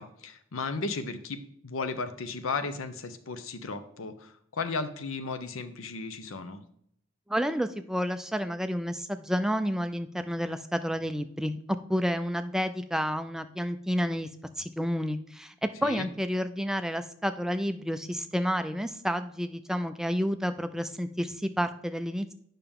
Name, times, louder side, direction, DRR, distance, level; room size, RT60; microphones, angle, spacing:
voice 1, 0.0-6.6 15.8-16.1, left 4 dB, 85° left, 10 dB, 0.7 m, -35 dB
voice 2, 7.3-11.6 11.9-14.3 14.6-22.3, equal, 5° right, 9 dB, 0.3 m, -30 dB
8.8 x 5.6 x 3.6 m, 0.68 s
head